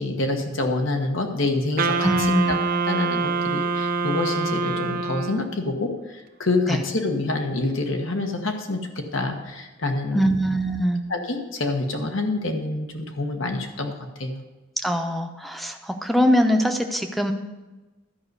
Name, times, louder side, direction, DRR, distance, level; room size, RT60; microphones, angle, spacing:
voice 1, 0.0-2.1 2.5-2.6 2.9-8.8 9.1-10.3 11.1-14.4, left 2 dB, 80° left, 3 dB, 1.4 m, -27 dB
Wind instrument woodwind instrument, 1.8-5.6, right 4 dB, 45° right, 0.6 m, -25 dB
voice 2, 2.0-2.6 6.7-6.8 10.1-11.0 14.8-17.3, equal, ahead, 6 dB, 0.7 m, -22 dB
12.0 x 5.5 x 8.0 m, 1.2 s
head